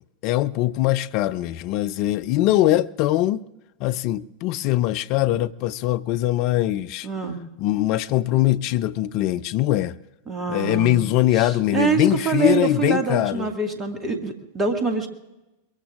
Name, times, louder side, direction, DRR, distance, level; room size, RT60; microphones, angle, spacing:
voice 1, 0.2-3.4 3.8-7.1 7.6-9.9 10.5-13.5, left 14 dB, 45° left, 0.4 m, -22 dB
voice 2, 7.0-7.4 10.3-11.0 11.3-15.1, right 5 dB, 20° right, 2.0 m, -25 dB
23.0 x 22.0 x 2.5 m
figure-of-eight pair, 90°, 0 cm